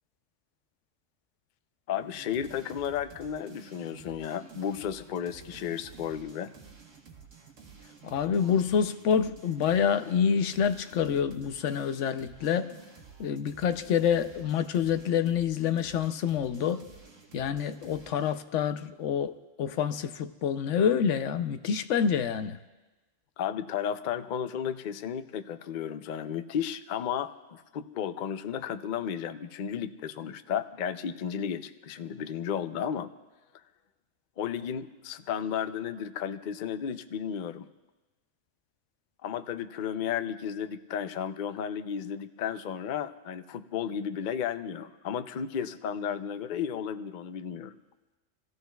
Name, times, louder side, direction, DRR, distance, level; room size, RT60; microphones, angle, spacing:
voice 1, 1.9-6.5 23.4-33.1 34.4-37.7 39.2-47.8, left 8 dB, 55° left, 10 dB, 0.6 m, -33 dB
sound 1, 1.9-18.4, right 5 dB, 90° right, 1.7 m, -51 dB
voice 2, 8.0-12.7 13.2-16.8 17.3-22.6, left 7 dB, 80° left, 10 dB, 0.9 m, -27 dB
29.0 x 15.0 x 2.3 m, 1.2 s
omnidirectional pair, 1.2 m